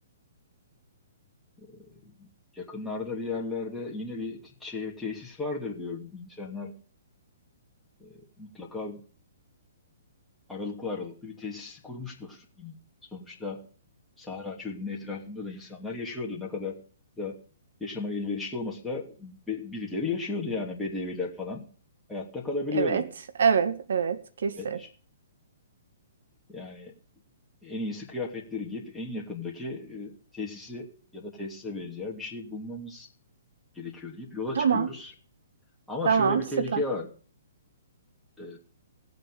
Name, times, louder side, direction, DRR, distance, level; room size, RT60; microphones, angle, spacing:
voice 1, 1.6-2.3 2.5-6.7 8.0-9.0 10.5-12.8 13.1-13.7 14.2-16.8 17.2-17.4 17.8-21.7 22.1-23.1 24.5-24.9 26.5-26.9 27.6-33.1 33.7-35.1 35.9-37.1 38.4-38.6, left 3 dB, 5° left, 2.9 m, -35 dB
voice 2, 23.4-24.8 34.6-34.9 36.0-36.4 36.7-36.8, right 6 dB, 65° right, 1.7 m, -24 dB
18.5 x 8.0 x 4.9 m
figure-of-eight pair, 125°, 0 cm